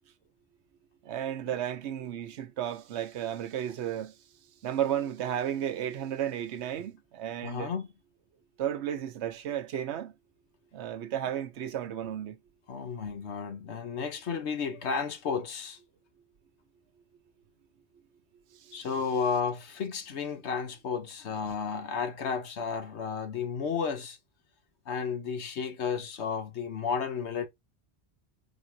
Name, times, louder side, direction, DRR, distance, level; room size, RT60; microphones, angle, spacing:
voice 1, 1.0-4.2 4.6-7.7 8.6-10.1 10.7-12.4 18.5-18.9, right 10 dB, 85° right, 1.0 m, -33 dB
voice 2, 7.4-7.9 12.7-15.8 18.7-24.2 24.9-27.5, left 6 dB, 85° left, 1.2 m, -32 dB
4.8 x 4.0 x 2.7 m
omnidirectional pair, 1.1 m